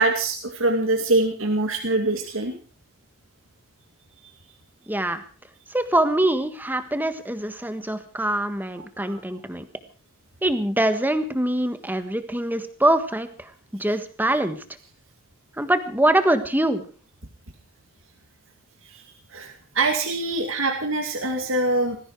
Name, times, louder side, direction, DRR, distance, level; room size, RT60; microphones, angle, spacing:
voice 1, 0.0-2.5 9.0-9.2 19.3-22.0, right 2 dB, 65° right, 4 dB, 2.4 m, -24 dB
voice 2, 4.9-5.2 5.7-9.6 10.4-13.3 13.8-14.6 15.6-16.8, right 1 dB, 10° right, 9 dB, 1.5 m, -23 dB
19.0 x 15.5 x 4.7 m, 0.39 s
head